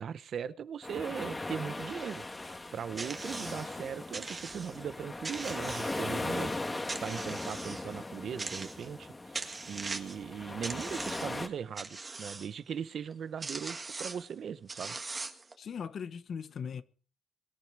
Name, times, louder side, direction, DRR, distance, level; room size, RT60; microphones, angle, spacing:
voice 1, 0.0-2.2 2.7-6.5 7.0-9.1 9.6-15.0, right 7 dB, 55° right, 0.8 m, -39 dB
sound 1, 0.8-11.5, left 2 dB, 20° left, 1.9 m, -39 dB
sound 2, 3.0-3.7 4.1-4.8 5.2-6.3 6.9-7.9 8.4-9.0 9.3-10.2 10.6-11.4 11.8-12.5 13.1-13.2 13.4-14.3 14.7-15.5, right 3 dB, 25° right, 1.8 m, -40 dB
voice 2, 15.6-16.8, left 6 dB, 55° left, 1.2 m, -39 dB
22.5 x 10.5 x 4.8 m
cardioid pair, 110°, 0 cm